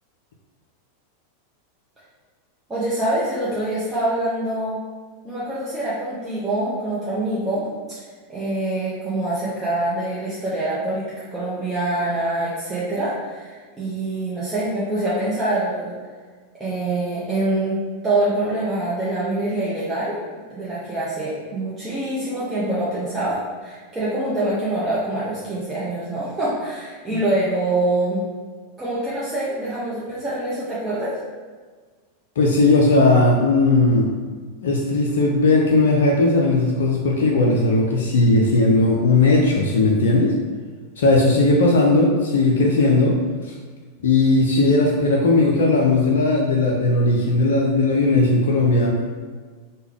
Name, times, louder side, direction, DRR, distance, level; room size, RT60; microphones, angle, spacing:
voice 1, 2.7-4.8 5.2-7.7 8.3-15.9 16.6-20.2 20.5-28.3 28.8-31.2, right 1 dB, 15° right, -10 dB, 0.7 m, -25 dB
voice 2, 32.4-34.1 34.6-40.3 41.0-43.1 43.4-43.5 44.0-48.9, left 2 dB, 65° left, -1 dB, 0.4 m, -17 dB
3.3 x 2.2 x 3.4 m, 1.5 s
figure-of-eight pair, 90°, 0 cm